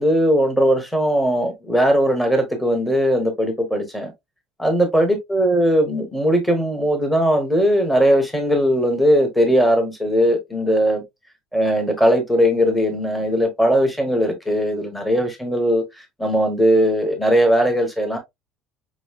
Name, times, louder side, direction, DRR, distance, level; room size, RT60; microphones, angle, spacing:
voice 1, 0.0-4.1 4.6-11.0 11.5-15.8 16.2-18.2, equal, 5° left, 1.0 m, -19 dB
5.0 x 3.0 x 2.2 m
cardioid pair, 170°, 0 cm